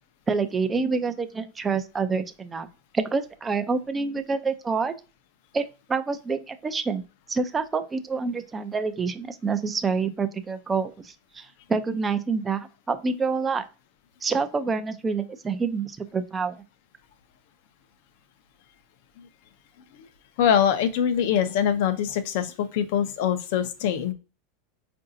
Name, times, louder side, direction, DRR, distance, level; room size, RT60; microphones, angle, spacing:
voice 1, 0.3-2.7 2.9-4.9 5.5-13.6 14.2-16.6, right 4 dB, 15° right, 9 dB, 0.4 m, -27 dB
voice 2, 20.4-24.1, left 8 dB, 65° left, 10 dB, 0.6 m, -23 dB
4.7 x 2.6 x 2.6 m, 0.32 s
supercardioid pair, 130°, 0 cm